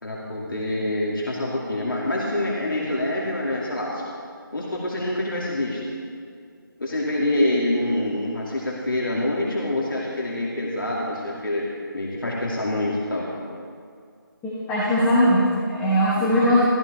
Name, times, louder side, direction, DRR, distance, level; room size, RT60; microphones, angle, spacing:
voice 1, 0.0-4.1 4.5-6.0 6.8-13.3 16.2-16.3, left 1 dB, 65° left, -4 dB, 2.4 m, -26 dB
voice 2, 14.4-16.6, equal, 5° left, -10 dB, 0.9 m, -20 dB
14.5 x 14.0 x 4.1 m, 2.2 s
figure-of-eight pair, 170°, 12 cm